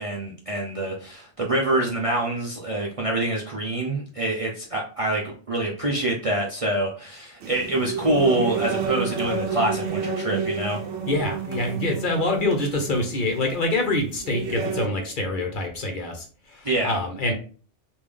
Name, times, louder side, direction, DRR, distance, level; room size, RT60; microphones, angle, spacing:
voice 1, 0.0-10.8 16.6-17.0, right 1 dB, 40° right, -3 dB, 0.5 m, -26 dB
sound 1, 7.4-14.9, right 5 dB, 70° right, 0.9 m, -30 dB
voice 2, 11.1-17.3, left 2 dB, 50° left, 3 dB, 0.8 m, -26 dB
3.6 x 2.5 x 3.2 m, 0.40 s
omnidirectional pair, 1.2 m